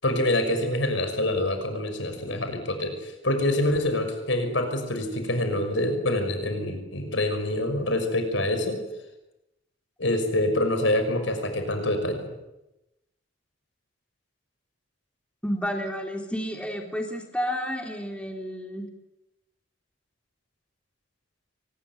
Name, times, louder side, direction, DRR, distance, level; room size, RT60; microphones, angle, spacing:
voice 1, 0.0-8.8 10.0-12.2, left 1 dB, 75° left, 6 dB, 6.0 m, -26 dB
voice 2, 15.4-18.9, equal, 5° left, 2 dB, 3.3 m, -31 dB
24.0 x 20.0 x 9.7 m, 0.93 s
head